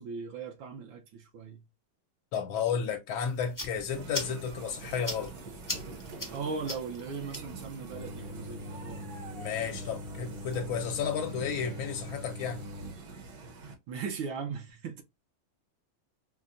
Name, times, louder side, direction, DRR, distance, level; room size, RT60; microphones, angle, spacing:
voice 1, 0.0-1.6 6.3-9.1 9.6-9.8 13.6-15.0, right 5 dB, 75° right, 1.5 m, -38 dB
voice 2, 2.3-5.3 9.3-12.6, left 7 dB, 85° left, 1.5 m, -32 dB
sound 1, 3.2-10.6, left 1 dB, 25° left, 0.4 m, -43 dB
sound 2, 3.9-13.7, right 4 dB, 60° right, 1.3 m, -46 dB
sound 3, 7.9-12.9, left 2 dB, 35° right, 0.7 m, -43 dB
5.5 x 2.1 x 2.4 m
omnidirectional pair, 2.2 m